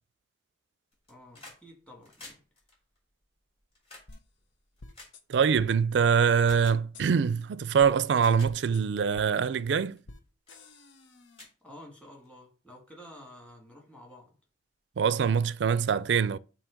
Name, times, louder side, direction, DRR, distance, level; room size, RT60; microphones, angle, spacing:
sound 1, 0.9-1.6 1.9-5.8 6.4-6.8 7.6-7.7 8.1-8.5 9.1-9.3 9.9-10.2 10.5-10.6 11.0-11.1 11.3-12.3 13.4-13.5, left 2 dB, 30° left, 3.2 m, -51 dB
voice 1, 1.1-2.4 11.6-14.3, left 1 dB, 5° left, 1.7 m, -50 dB
sound 2, 4.1-4.2 4.8-5.2 5.6-5.7 6.5-6.6 6.9-7.1 7.8-7.9 8.4-8.8 9.1-9.3 10.1-10.2 10.5-11.5, left 2 dB, 85° left, 0.8 m, -48 dB
voice 2, 5.3-10.0 15.0-16.4, right 6 dB, 70° right, 0.4 m, -24 dB
7.4 x 2.8 x 5.0 m
head